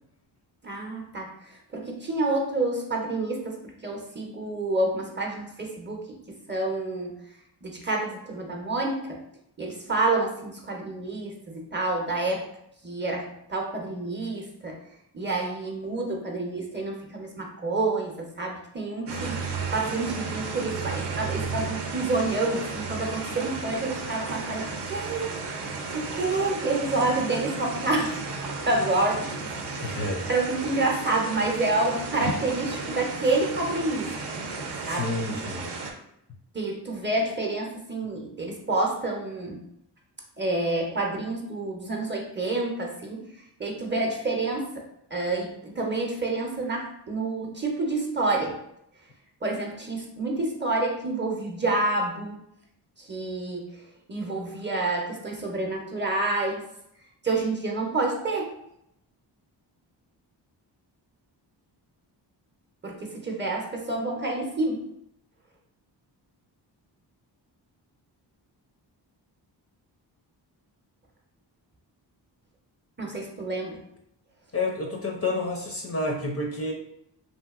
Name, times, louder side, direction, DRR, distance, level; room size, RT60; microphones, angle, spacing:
voice 1, 0.6-1.3 1.7-3.6 3.8-7.1 7.6-9.2 9.6-12.5 12.8-14.8 15.1-28.2 28.6-29.3 29.7-34.1 34.9-35.1 36.5-39.6 40.4-43.2 43.6-44.8 45.1-48.6 49.4-52.4 53.0-53.8 54.1-56.6 57.2-58.5 62.8-64.9 73.0-73.8, right 2 dB, 25° right, 0 dB, 0.6 m, -28 dB
sound 1, 19.1-35.9, right 4 dB, 65° right, 0.6 m, -34 dB
voice 2, 29.8-30.2 34.8-35.8 74.5-76.7, left 2 dB, 35° left, 0 dB, 0.4 m, -29 dB
2.7 x 2.6 x 2.4 m, 0.77 s
cardioid pair, 60°, 44 cm